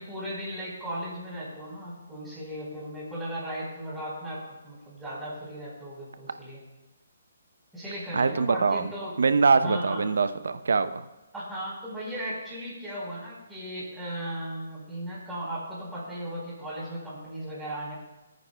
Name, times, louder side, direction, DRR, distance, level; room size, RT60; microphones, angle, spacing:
voice 1, 0.0-6.6 7.7-9.2 9.6-10.0 11.3-18.0, equal, 5° right, -7 dB, 4.3 m, -36 dB
voice 2, 8.1-8.9 9.2-11.0, right 4 dB, 75° right, 11 dB, 0.7 m, -23 dB
24.5 x 9.4 x 2.3 m, 1.1 s
hypercardioid pair, 160°, 0 cm